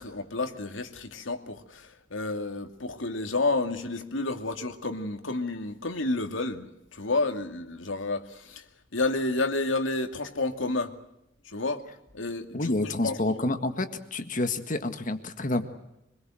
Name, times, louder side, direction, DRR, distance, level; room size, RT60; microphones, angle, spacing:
voice 1, 0.0-8.6 8.9-10.9 11.5-11.8 12.1-13.2, left 2 dB, 90° left, 2.5 m, -30 dB
voice 2, 12.5-15.7, left 2 dB, 45° left, 1.8 m, -29 dB
26.0 x 21.5 x 7.8 m
head